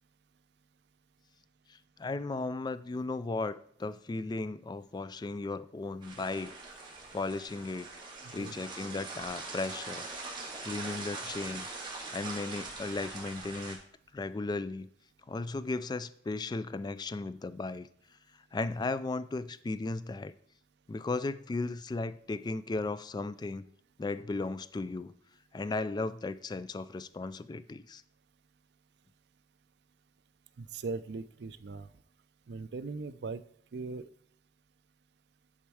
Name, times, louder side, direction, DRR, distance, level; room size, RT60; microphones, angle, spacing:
voice 1, 1.7-6.5 7.1-7.9 8.3-10.1 10.6-11.7 12.1-13.8 14.1-14.9 15.3-17.9 18.5-20.3 20.9-23.6 24.0-25.1 25.5-28.0, left 3 dB, 25° left, 14 dB, 0.3 m, -36 dB
sound 1, 6.0-13.8, right 3 dB, 30° right, 2.1 m, -42 dB
voice 2, 8.2-8.6 30.6-31.9 32.5-33.4 33.7-34.0, right 4 dB, 70° right, 13 dB, 0.4 m, -39 dB
10.0 x 4.4 x 4.8 m, 0.65 s
head